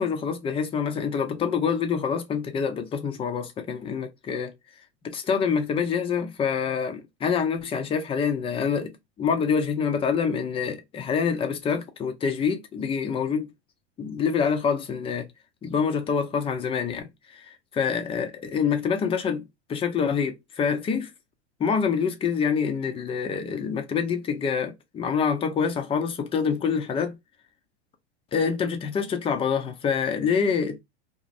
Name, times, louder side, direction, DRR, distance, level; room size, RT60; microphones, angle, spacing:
voice 1, 0.0-4.5 5.0-13.5 14.0-15.3 15.6-19.4 19.7-21.1 21.6-27.1 28.3-30.8, left 6 dB, 15° left, 0.5 m, -26 dB
2.5 x 2.0 x 2.4 m
hypercardioid pair, 110°, 34 cm